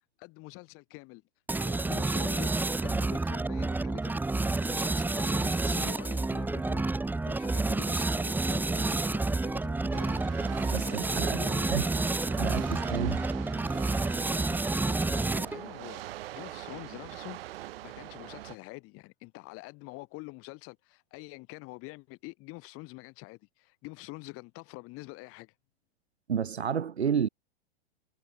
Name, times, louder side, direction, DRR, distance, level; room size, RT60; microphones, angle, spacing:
voice 1, 0.2-1.2 1.6-2.5 2.8-10.3 10.6-11.8 14.5-16.0 16.3-25.5, left 24 dB, 45° left, 7.1 m, -46 dB
sound 1, 1.5-15.7, right 3 dB, 5° right, 1.0 m, -29 dB
sound 2, 9.9-18.6, right 15 dB, 65° right, 2.6 m, -43 dB
voice 2, 10.7-11.4 11.7-11.8 12.3-13.3 26.3-27.3, right 7 dB, 85° right, 3.4 m, -30 dB
hypercardioid pair, 110°, 32 cm